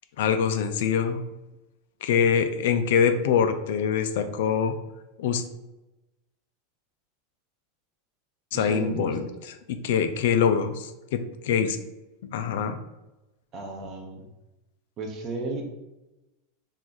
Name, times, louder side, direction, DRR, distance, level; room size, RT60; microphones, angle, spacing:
voice 1, 0.2-1.2 2.0-4.8 5.2-5.4 8.5-9.2 9.7-11.8 12.2-12.8, left 7 dB, 70° left, 9 dB, 0.3 m, -24 dB
voice 2, 8.5-9.2 13.5-14.3 15.0-15.6, right 3 dB, 30° right, 2 dB, 0.6 m, -34 dB
3.0 x 2.4 x 3.8 m, 1.0 s
supercardioid pair, 160°, 0 cm